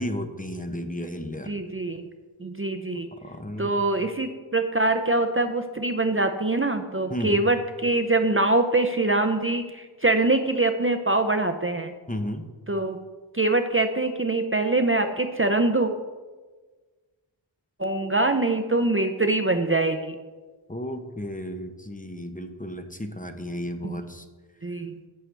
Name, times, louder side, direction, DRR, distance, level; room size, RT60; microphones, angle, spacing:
voice 1, 0.0-1.5 3.2-3.7 7.1-7.5 12.1-12.5 20.7-24.2, left 1 dB, 15° left, 6 dB, 0.8 m, -33 dB
voice 2, 1.5-2.1 2.4-3.1 3.6-11.9 12.7-13.0 13.3-15.9 17.8-20.1 23.8-24.0 24.6-24.9, right 2 dB, 30° right, 6 dB, 0.6 m, -24 dB
11.0 x 8.7 x 3.3 m, 1.4 s
wide cardioid pair, 50°, 47 cm